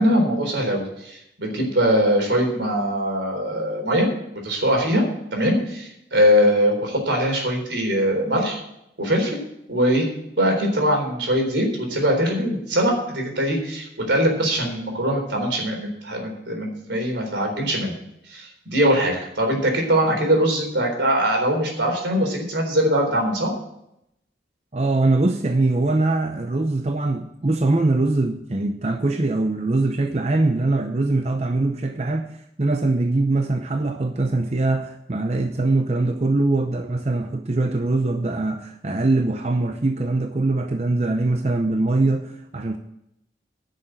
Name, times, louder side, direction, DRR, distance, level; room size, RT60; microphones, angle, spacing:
voice 1, 0.0-4.1 4.4-5.0 5.3-8.6 9.0-9.4 9.7-10.1 10.4-18.0 18.3-23.5, equal, 85° right, 2 dB, 3.8 m, -22 dB
voice 2, 24.7-32.3 32.6-42.8, right 2 dB, 35° right, 5 dB, 0.7 m, -22 dB
11.0 x 6.5 x 9.0 m, 0.79 s
head